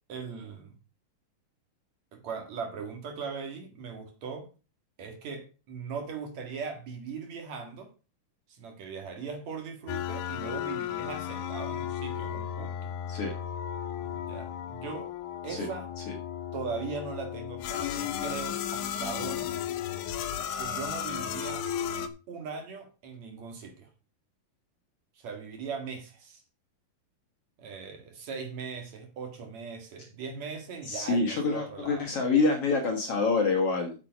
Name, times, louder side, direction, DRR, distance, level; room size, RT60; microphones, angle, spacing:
voice 1, 0.1-0.7 2.1-4.5 5.0-7.9 8.5-12.7 14.0-15.1 15.4-15.9 16.5-19.5 20.6-21.6 22.3-23.9 25.2-26.4 27.6-32.1, right 5 dB, 55° right, 5 dB, 2.9 m, -39 dB
sound 1, 9.9-22.1, left 9 dB, 75° left, 2.2 m, -34 dB
voice 2, 30.8-34.0, left 3 dB, 55° left, 3 dB, 2.0 m, -26 dB
8.5 x 7.6 x 5.3 m, 0.34 s
omnidirectional pair, 3.9 m